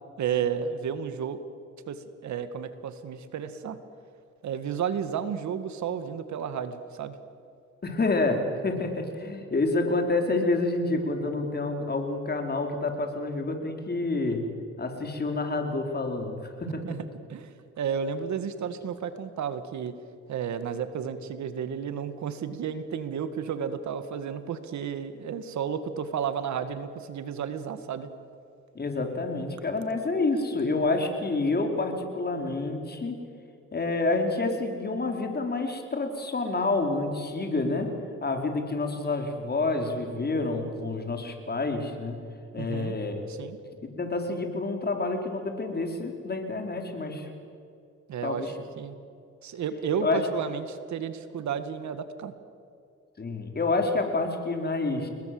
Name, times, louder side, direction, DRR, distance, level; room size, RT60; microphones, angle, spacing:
voice 1, 0.2-1.4 1.9-3.8 4.4-7.2 16.8-17.0 17.3-17.5 17.8-19.9 20.3-28.1 42.6-43.0 43.3-43.6 48.1-49.0 49.4-52.3, right 7 dB, 70° right, 10 dB, 1.9 m, -32 dB
voice 2, 7.8-14.4 14.8-16.8 28.7-33.2 33.7-37.9 38.2-42.2 42.5-43.3 43.8-47.3 48.2-48.5 50.0-50.2 53.2-55.1, left 3 dB, 30° left, 4 dB, 4.6 m, -28 dB
30.0 x 21.0 x 7.9 m, 2.4 s
cardioid pair, 90°, 30 cm